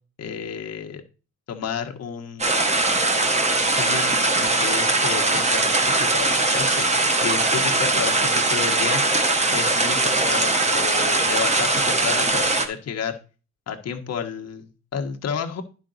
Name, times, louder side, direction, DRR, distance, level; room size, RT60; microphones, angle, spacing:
voice 1, 0.2-1.0 1.5-2.7 3.7-6.9 7.2-9.0 9.5-13.2 13.7-15.6, left 7 dB, 55° left, 4 dB, 1.4 m, -31 dB
sound 1, 2.4-12.7, right 2 dB, 20° right, 1.4 m, -21 dB
10.5 x 5.3 x 3.9 m, 0.34 s
cardioid pair, 90°, 30 cm